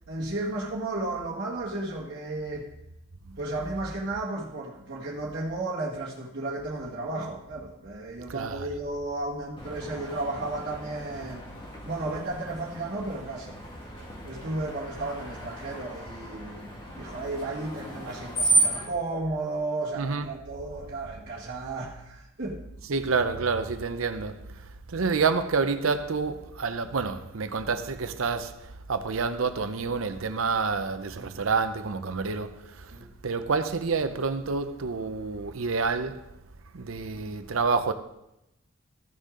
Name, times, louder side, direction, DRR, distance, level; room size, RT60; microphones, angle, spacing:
voice 1, 0.1-2.7 3.4-11.5 11.8-13.5 14.2-22.6 31.2-31.3 32.9-33.1, right 2 dB, 55° right, 1.6 m, -34 dB
voice 2, 8.3-8.7 20.0-20.3 22.9-32.9 33.2-36.3 36.7-37.9, right 4 dB, 90° right, 0.7 m, -28 dB
Screech, 9.6-18.9, right 2 dB, 25° left, 1.9 m, -33 dB
15.0 x 6.5 x 3.8 m
head